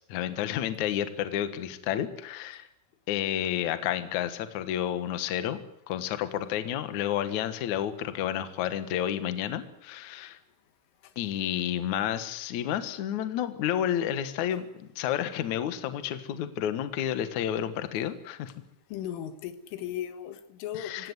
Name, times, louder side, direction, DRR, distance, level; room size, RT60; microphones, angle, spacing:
voice 1, 0.0-2.7 3.1-5.6 5.9-10.4 11.2-18.5 20.7-21.1, left 10 dB, 65° left, 11 dB, 1.9 m, -30 dB
voice 2, 18.9-21.1, left 10 dB, 90° left, 10 dB, 4.1 m, -37 dB
25.0 x 16.5 x 9.6 m, 0.79 s
omnidirectional pair, 5.5 m